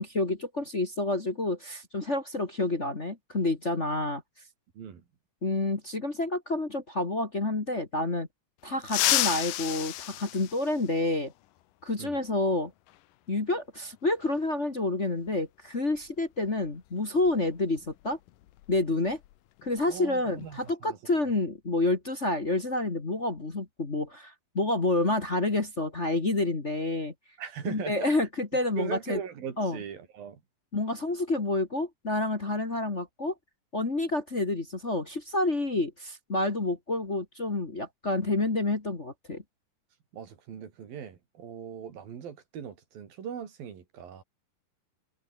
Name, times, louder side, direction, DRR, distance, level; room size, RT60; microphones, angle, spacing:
voice 1, 0.0-4.2 5.4-8.3 8.6-11.3 11.8-12.7 13.3-18.2 18.7-19.2 19.6-27.1 27.6-29.2 29.6-29.8 30.7-33.3 33.7-39.4, left 2 dB, 25° left, 1.8 m, -29 dB
sound 1, 8.8-11.2 12.9-13.0 14.2-14.3 15.9-16.1 16.5-16.7 17.2-19.3 19.6-19.9 20.3-20.7, left 15 dB, 75° left, 2.6 m, -31 dB
voice 2, 19.9-21.0 27.4-28.1 28.8-30.4 40.1-44.2, right 8 dB, 90° right, 4.8 m, -40 dB
omnidirectional pair, 4.0 m